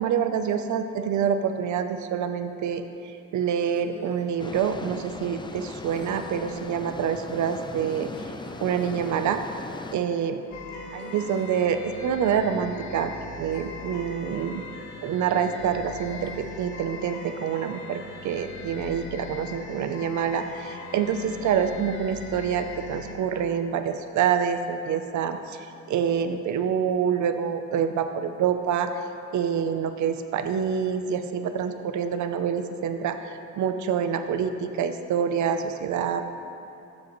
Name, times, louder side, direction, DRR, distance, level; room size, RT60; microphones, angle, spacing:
voice 1, 0.0-2.8 3.3-8.1 8.6-9.4 9.9-10.4 10.9-14.7 15.0-25.6 25.9-28.9 29.3-36.2, right 7 dB, 70° right, 8 dB, 0.7 m, -26 dB
sound 1, 3.7-4.4 5.8-6.5 7.7-9.5 11.0-11.7 13.4-14.0 14.3-14.7 16.1-16.5, left 1 dB, 35° left, 2.2 m, -47 dB
sound 2, 4.4-10.0, left 3 dB, 15° left, 0.5 m, -38 dB
sound 3, 10.5-23.1, left 3 dB, 75° left, 1.3 m, -40 dB
15.0 x 7.4 x 3.2 m, 2.7 s
cardioid pair, 90°, 30 cm